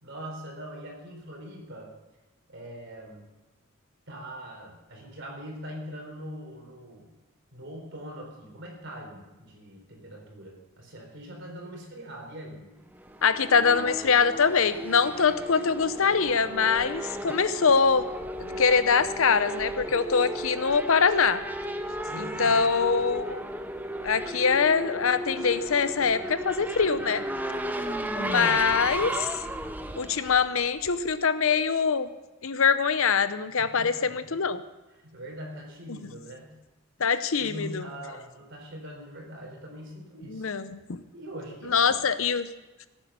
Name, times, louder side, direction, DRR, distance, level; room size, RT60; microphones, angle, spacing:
voice 1, 0.0-1.9 2.5-3.2 4.1-7.1 7.5-12.7 22.1-22.6 33.6-34.3 35.0-36.6 37.4-40.5 41.1-41.9, equal, 55° right, 0 dB, 4.0 m, -42 dB
Race car auto racing / Accelerating revving vroom, 13.0-31.1, right 1 dB, 10° right, 0.6 m, -35 dB
voice 2, 13.2-18.1 18.4-21.4 22.2-23.4 24.0-27.2 28.1-29.3 30.0-32.1 32.4-34.6 37.0-37.8 40.3-41.0 41.7-42.5, left 5 dB, 65° left, 13 dB, 0.7 m, -24 dB
16.0 x 9.1 x 6.8 m, 1.1 s
head